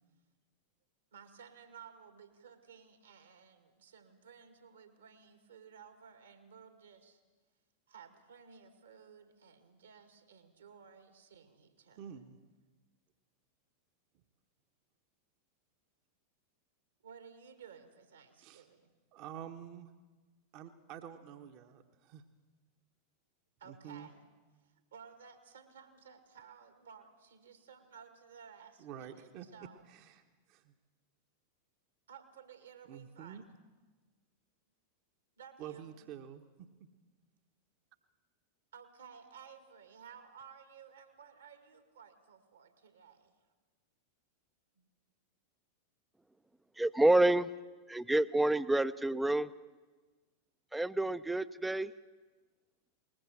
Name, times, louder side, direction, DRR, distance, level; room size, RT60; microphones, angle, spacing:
voice 1, 1.1-7.2 7.9-12.2 17.0-18.9 23.6-24.2 24.6-29.9 32.1-33.5 35.4-36.0 38.7-43.4 44.8-44.9, right 7 dB, 70° right, 8 dB, 2.2 m, -56 dB
voice 2, 12.0-12.4 18.4-18.6 19.1-19.9 20.5-22.2 23.6-24.1 28.8-29.5 29.9-30.2 30.5-30.7 32.9-33.4 35.6-36.4, right 9 dB, 45° right, 7 dB, 1.2 m, -48 dB
voice 3, 46.8-47.5 47.9-49.5 50.7-51.9, right 2 dB, 5° right, 15 dB, 0.6 m, -28 dB
21.0 x 20.0 x 7.5 m, 1.3 s
figure-of-eight pair, 90°, 0 cm